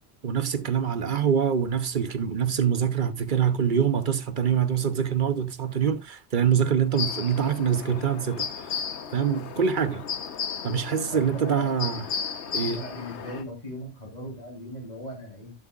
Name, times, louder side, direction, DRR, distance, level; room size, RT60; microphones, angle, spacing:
voice 1, 0.2-8.7 9.1-10.1 10.6-12.1 12.5-12.8, right 8 dB, 50° right, 0.9 m, -25 dB
sound 1, 6.9-13.4, left 7 dB, 85° left, 1.3 m, -34 dB
voice 2, 11.1-11.7 12.7-15.5, equal, 40° left, 3.5 m, -39 dB
12.5 x 7.7 x 2.4 m
omnidirectional pair, 1.1 m